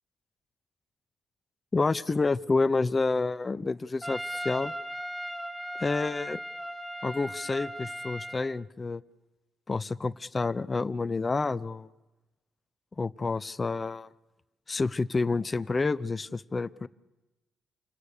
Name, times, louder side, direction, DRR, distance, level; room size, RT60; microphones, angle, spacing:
voice 1, 1.7-4.7 5.8-6.4 7.0-9.0 9.7-11.9 12.9-14.1 14.7-16.9, left 3 dB, 25° left, 15 dB, 0.8 m, -29 dB
Trumpet, 4.0-8.4, equal, 10° right, 5.9 m, -37 dB
28.5 x 19.0 x 6.7 m, 1.1 s
cardioid pair, 90°, 0 cm